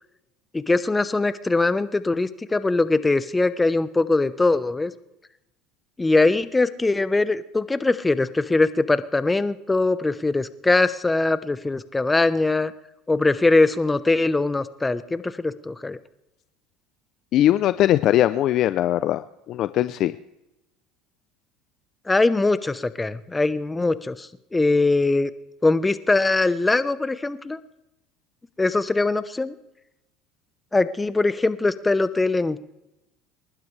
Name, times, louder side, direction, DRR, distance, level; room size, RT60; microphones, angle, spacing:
voice 1, 0.5-4.9 6.0-12.7 13.1-16.0 22.1-25.3 25.6-27.6 28.6-29.5 30.7-32.6, left 3 dB, 15° left, 13 dB, 0.9 m, -21 dB
voice 2, 17.3-20.1, left 13 dB, 55° left, 13 dB, 0.5 m, -20 dB
29.5 x 12.0 x 3.3 m, 0.94 s
supercardioid pair, 90°, 0 cm